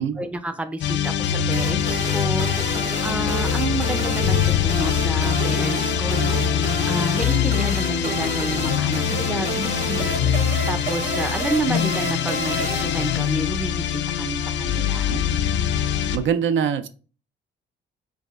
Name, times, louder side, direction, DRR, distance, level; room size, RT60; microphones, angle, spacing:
voice 1, 0.2-2.5 3.0-10.2 10.7-15.2, right 2 dB, 5° right, 9 dB, 0.4 m, -30 dB
sound 1, 0.8-16.2, left 9 dB, 65° left, 0.4 m, -23 dB
sound 2, 1.5-13.7, right 3 dB, 35° right, 0.9 m, -31 dB
voice 2, 16.1-16.9, right 8 dB, 70° right, 10 dB, 0.4 m, -24 dB
4.7 x 2.4 x 2.3 m, 0.37 s
cardioid pair, 90°, 20 cm